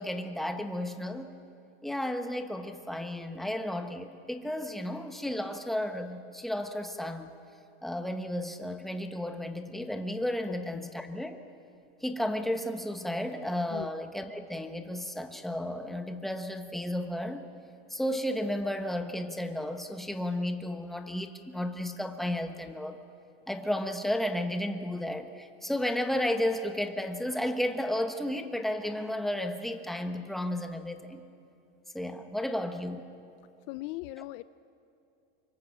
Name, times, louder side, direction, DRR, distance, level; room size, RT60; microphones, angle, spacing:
voice 1, 0.0-1.3 1.8-7.3 7.8-11.4 12.0-17.4 17.9-23.0 23.5-31.2 31.9-33.0, left 1 dB, ahead, 6 dB, 1.3 m, -33 dB
voice 2, 33.7-34.4, left 19 dB, 55° left, 15 dB, 0.6 m, -39 dB
25.5 x 24.0 x 7.4 m, 2.6 s
supercardioid pair, 135°, 32 cm